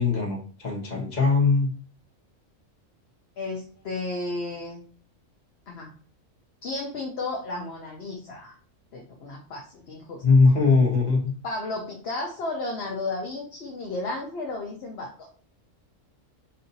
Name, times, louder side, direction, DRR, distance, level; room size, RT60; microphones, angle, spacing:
voice 1, 0.0-1.7 10.2-11.3, left 4 dB, 35° left, -2 dB, 1.3 m, -20 dB
voice 2, 3.4-4.8 5.7-5.9 6.6-8.6 8.9-10.2 11.4-15.3, left 2 dB, 55° left, -1 dB, 1.0 m, -33 dB
5.4 x 2.7 x 2.7 m, 0.41 s
omnidirectional pair, 1.4 m